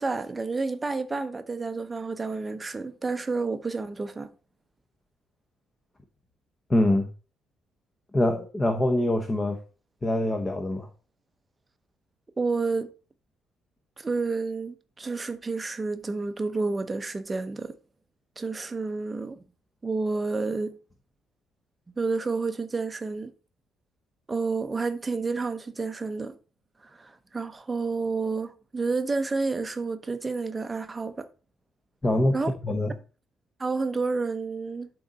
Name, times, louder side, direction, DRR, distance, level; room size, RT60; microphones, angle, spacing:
voice 1, 0.0-4.3 12.4-12.9 14.0-17.7 18.4-19.4 19.8-20.8 22.0-23.3 24.3-26.3 26.8-31.3 32.3-32.5 33.6-34.9, right 4 dB, 15° right, 0.7 m, -30 dB
voice 2, 6.7-7.1 8.1-9.6 10.0-10.9 32.0-32.4 32.6-32.9, left 1 dB, 15° left, 0.9 m, -24 dB
11.5 x 3.9 x 4.1 m
cardioid pair, 150°, 0 cm